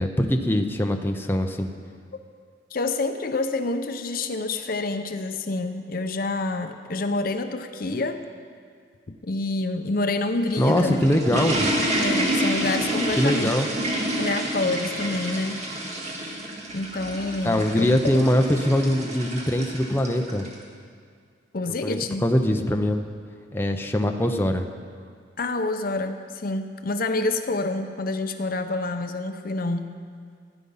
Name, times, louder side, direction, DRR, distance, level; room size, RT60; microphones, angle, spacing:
voice 1, 0.0-1.7 10.6-11.7 13.2-13.7 17.4-20.5 21.8-23.0 23.5-24.7, left 1 dB, 10° left, 4 dB, 0.7 m, -22 dB
voice 2, 2.7-8.2 9.1-11.0 11.3-11.4 11.9-13.5 14.2-15.6 16.7-17.9 21.5-22.2 25.4-30.0, left 2 dB, 50° left, 8 dB, 0.7 m, -27 dB
sound 1, 10.2-20.5, right 1 dB, 40° right, 2.0 m, -28 dB
16.0 x 9.8 x 5.6 m, 2.1 s
head